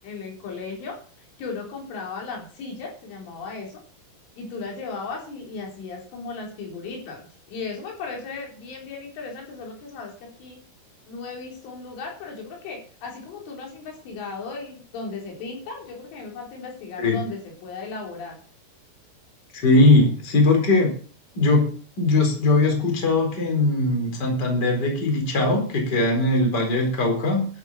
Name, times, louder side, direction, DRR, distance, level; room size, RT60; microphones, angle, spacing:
voice 1, 0.0-1.0 1.4-3.8 4.4-7.2 7.5-10.6 11.1-18.4, left 4 dB, 75° left, 0 dB, 6.5 m, -36 dB
voice 2, 19.5-20.9 21.3-21.7 22.0-27.5, left 2 dB, 20° left, 2 dB, 4.3 m, -20 dB
13.0 x 9.1 x 7.4 m, 0.43 s
omnidirectional pair, 5.7 m